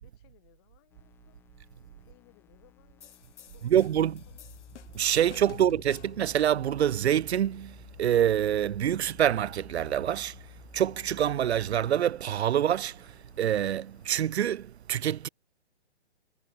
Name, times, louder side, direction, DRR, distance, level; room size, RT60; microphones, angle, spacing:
voice 1, 0.0-1.4 2.0-4.4 5.5-5.7, left 21 dB, 20° left, 5.6 m, -63 dB
sound 1, 0.9-14.3, left 10 dB, 5° left, 1.3 m, -54 dB
sound 2, 3.0-6.3, left 9 dB, 85° left, 0.8 m, -50 dB
voice 2, 3.6-4.2 4.9-10.4 10.7-15.3, right 10 dB, 65° right, 0.5 m, -26 dB
hypercardioid pair, 170°, 35 cm